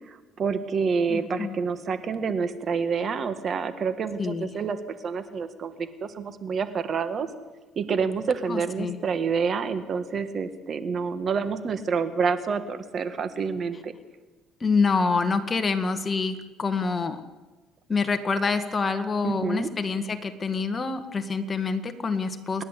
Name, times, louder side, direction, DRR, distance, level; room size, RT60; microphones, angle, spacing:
voice 1, 0.1-7.3 7.7-13.9 19.2-19.7, right 5 dB, 45° right, 11 dB, 1.6 m, -28 dB
voice 2, 1.1-1.6 4.2-4.5 8.5-8.9 14.6-17.2 17.9-22.6, left 4 dB, 30° left, 8 dB, 1.8 m, -26 dB
29.0 x 11.0 x 8.3 m, 1.2 s
cardioid pair, 100°, 0 cm